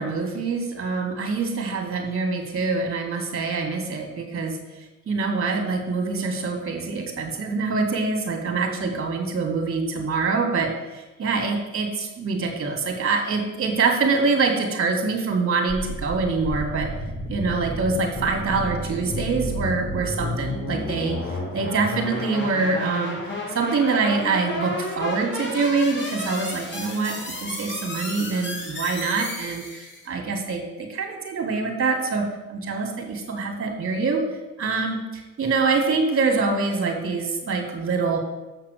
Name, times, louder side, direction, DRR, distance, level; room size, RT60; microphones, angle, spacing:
voice 1, 0.0-4.6 5.1-16.9 17.3-23.2 23.5-34.2 34.6-38.2, right 4 dB, 45° right, 3 dB, 2.2 m, -25 dB
sound 1, 15.7-30.1, left 1 dB, 35° left, 2.3 m, -32 dB
7.3 x 6.0 x 6.7 m, 1.1 s
cardioid pair, 90°, 30 cm